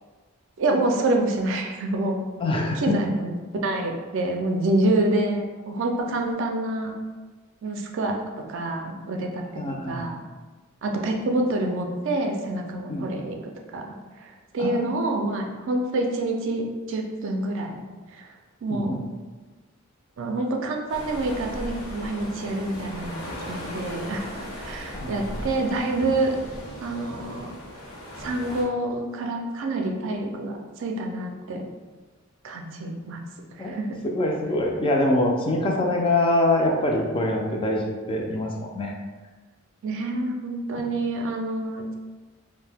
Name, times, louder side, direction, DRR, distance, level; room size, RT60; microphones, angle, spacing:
voice 1, 0.6-2.2 2.8-3.3 3.6-6.9 7.6-8.2 8.5-9.4 9.9-10.2 10.8-17.8 18.1-18.3 18.6-19.0 20.2-26.4 26.8-27.5 28.2-31.6 32.4-33.2 33.6-34.0 39.8-41.9, right 2 dB, 65° right, 2 dB, 0.4 m, -27 dB
voice 2, 2.4-3.0 9.6-10.1 12.9-13.1 14.6-14.9 18.7-19.0 24.9-25.4 33.6-33.7 34.1-38.9, left 1 dB, 25° left, 0 dB, 0.3 m, -24 dB
sound 1, 20.9-28.6, equal, 90° left, 0.9 m, -37 dB
2.6 x 2.1 x 3.3 m, 1.3 s
head